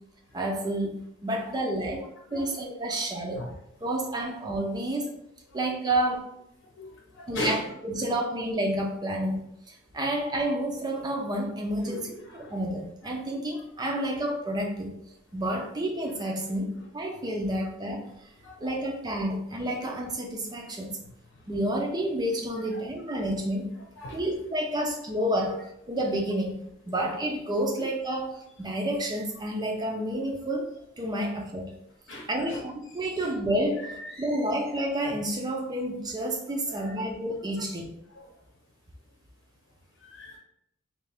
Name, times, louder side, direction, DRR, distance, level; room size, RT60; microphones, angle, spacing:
voice 1, 0.3-2.0 2.3-3.5 3.8-5.1 5.5-6.3 7.3-14.9 15.3-16.7 16.9-18.0 18.6-21.0 21.5-23.7 24.1-25.6 25.9-31.7 32.3-37.9, right 1 dB, 20° right, 2 dB, 0.4 m, -30 dB
voice 2, 1.5-1.8 2.3-2.5 3.3-3.5 6.7-7.7 11.8-12.6 13.3-13.4 18.4-18.6 21.3-21.5 24.0-24.2 24.7-24.9 31.1-31.2 32.1-32.6 33.8-34.3 36.7-37.0 38.1-38.3 40.0-40.4, left 1 dB, 65° left, -1 dB, 0.8 m, -39 dB
3.2 x 2.8 x 3.4 m, 0.76 s
head